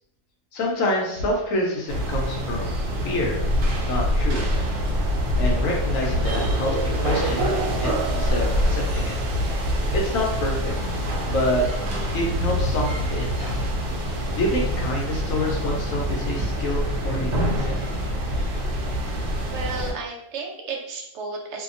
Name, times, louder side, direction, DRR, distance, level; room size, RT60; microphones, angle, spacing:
voice 1, 0.5-3.4 3.8-4.4 5.4-7.5 7.8-9.1 9.9-10.7 11.3-11.6 12.1-13.5 14.4-17.8, left 1 dB, 70° left, -1 dB, 0.9 m, -27 dB
sound 1, 1.9-19.9, equal, 85° right, 1.2 m, -25 dB
voice 2, 19.5-21.6, right 3 dB, 65° right, 0 dB, 0.7 m, -33 dB
2.7 x 2.2 x 2.5 m, 0.80 s
omnidirectional pair, 1.6 m